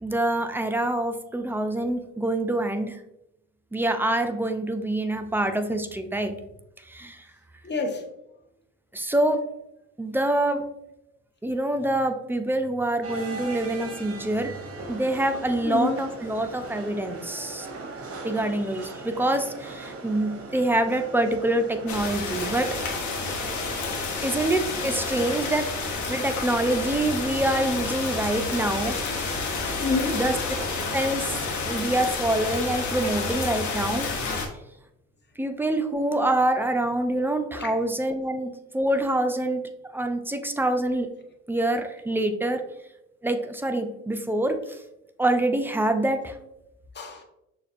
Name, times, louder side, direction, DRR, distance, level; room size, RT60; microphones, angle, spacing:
voice 1, 0.0-3.0 3.7-6.4 6.9-7.2 8.9-9.4 10.0-10.6 11.4-14.6 14.9-17.7 18.2-22.7 24.2-29.2 30.1-30.3 30.9-31.4 31.7-34.1 35.4-39.6 39.9-41.1 41.5-42.6 43.2-44.8 45.2-46.3, right 1 dB, 5° right, 7 dB, 0.5 m, -26 dB
voice 2, 7.6-8.0 15.6-16.1 29.8-30.2 37.5-37.7 46.9-47.2, left 3 dB, 30° left, 3 dB, 1.0 m, -28 dB
sound 1, 13.0-32.1, right 3 dB, 35° right, 1.0 m, -39 dB
sound 2, 21.9-34.5, left 4 dB, 50° left, 1.0 m, -30 dB
6.4 x 2.4 x 2.5 m, 0.85 s
hypercardioid pair, 50°, 38 cm